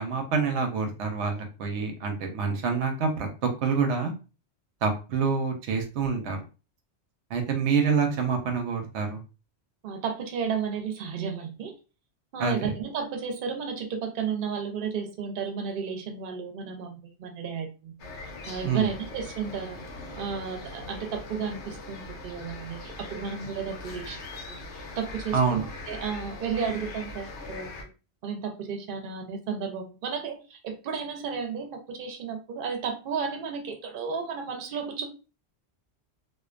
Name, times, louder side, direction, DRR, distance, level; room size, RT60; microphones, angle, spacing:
voice 1, 0.0-4.1 4.8-6.4 7.3-9.2 12.4-12.5 18.6-18.9 25.3-25.7, right 5 dB, 90° right, 4 dB, 0.9 m, -27 dB
voice 2, 9.8-11.7 12.3-17.9 18.5-19.8 20.2-24.2 24.5-27.7 28.2-35.1, right 6 dB, 60° right, 4 dB, 0.7 m, -33 dB
sound 1, 18.0-27.8, left 2 dB, 85° left, 1.0 m, -41 dB
2.4 x 2.2 x 2.4 m, 0.32 s
omnidirectional pair, 1.1 m